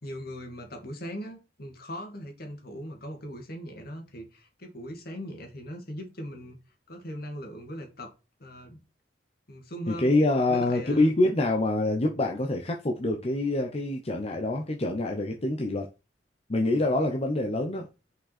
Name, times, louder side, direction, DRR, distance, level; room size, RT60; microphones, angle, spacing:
voice 1, 0.0-6.6 6.9-8.1 8.4-8.8 9.5-10.2 10.5-11.1, equal, 60° left, 2.4 m, -40 dB
voice 2, 9.9-15.9 16.5-17.9, left 2 dB, 35° left, 0.9 m, -26 dB
6.3 x 5.5 x 4.3 m
head